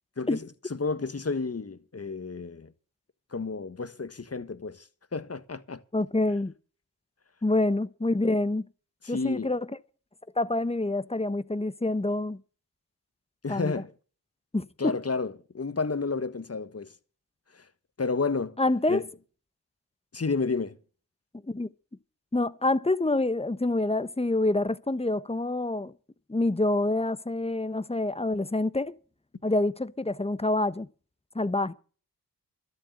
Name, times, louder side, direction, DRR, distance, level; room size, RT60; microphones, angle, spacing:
voice 1, 0.2-2.7 3.3-5.8 9.0-9.5 13.4-13.9 14.8-16.9 17.5-17.6 18.0-18.6 18.9-19.1 20.1-20.8, left 4 dB, 35° left, 1.6 m, -31 dB
voice 2, 5.9-6.5 7.4-8.6 9.1-9.7 10.4-12.4 13.5-13.8 14.5-14.9 18.6-19.0 21.5-21.7 22.3-25.9 26.3-29.0 29.4-30.9 31.3-31.7, left 2 dB, 15° left, 1.1 m, -27 dB
12.5 x 7.9 x 8.0 m
cardioid pair, 45°, 40 cm